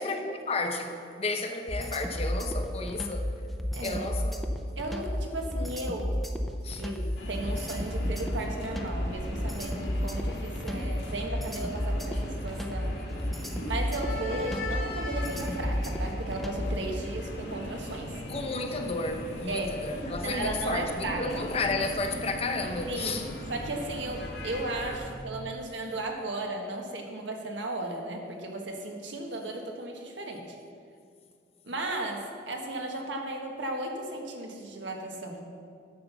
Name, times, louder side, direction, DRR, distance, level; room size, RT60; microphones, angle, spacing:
voice 1, 0.0-3.3 3.8-4.4 6.6-6.8 18.3-23.3 25.2-25.5, left 3 dB, 35° left, 5 dB, 0.8 m, -32 dB
sound 1, 1.7-16.9, left 1 dB, ahead, 0.5 m, -32 dB
voice 2, 4.8-6.1 6.8-13.0 13.6-18.1 19.5-19.7 20.2-21.4 22.9-23.2 23.5-30.6 31.6-35.4, right 2 dB, 90° right, 1 dB, 1.4 m, -35 dB
sound 2, 7.2-25.0, left 1 dB, 75° left, 2.1 m, -38 dB
10.5 x 5.8 x 6.9 m, 2.3 s
head